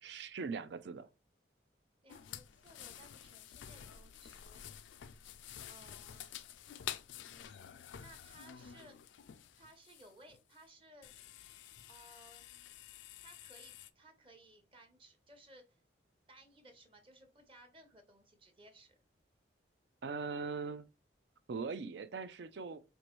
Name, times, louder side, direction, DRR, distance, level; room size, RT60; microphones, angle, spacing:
voice 1, 0.0-1.1 20.0-20.9 21.5-22.8, right 4 dB, 65° right, 0.4 m, -40 dB
voice 2, 2.0-4.6 5.7-6.3 8.0-9.0 9.6-11.1 11.9-12.7 13.2-15.8 16.3-19.0, right 1 dB, 30° right, 0.8 m, -60 dB
sound 1, 2.1-10.6 11.0-13.9, left 10 dB, 75° left, 0.3 m, -50 dB
4.5 x 2.6 x 3.0 m
head